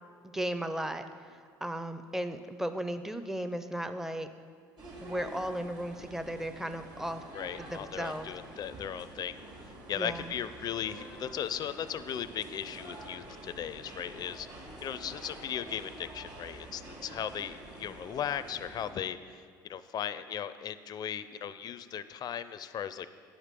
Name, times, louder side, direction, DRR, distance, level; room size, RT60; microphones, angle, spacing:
voice 1, 0.2-4.3 5.0-7.2 7.6-8.3 9.9-10.3, right 1 dB, 5° right, 9 dB, 0.6 m, -36 dB
sound 1, 4.8-18.9, right 2 dB, 45° right, 2.8 m, -47 dB
voice 2, 7.3-9.4 9.9-23.2, left 9 dB, 45° left, 13 dB, 0.5 m, -37 dB
9.4 x 5.1 x 7.5 m, 2.1 s
supercardioid pair, 75°, 10 cm